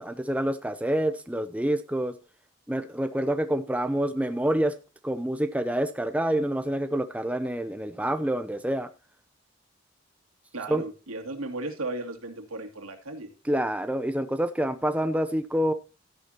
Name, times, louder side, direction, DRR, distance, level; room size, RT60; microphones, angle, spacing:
voice 1, 0.0-2.2 2.7-4.7 5.0-8.9 10.7-10.8 13.4-15.7, right 1 dB, 5° right, 10 dB, 0.5 m, -27 dB
voice 2, 10.5-13.3, right 2 dB, 90° right, 4 dB, 2.6 m, -35 dB
13.0 x 10.5 x 2.9 m, 0.35 s
head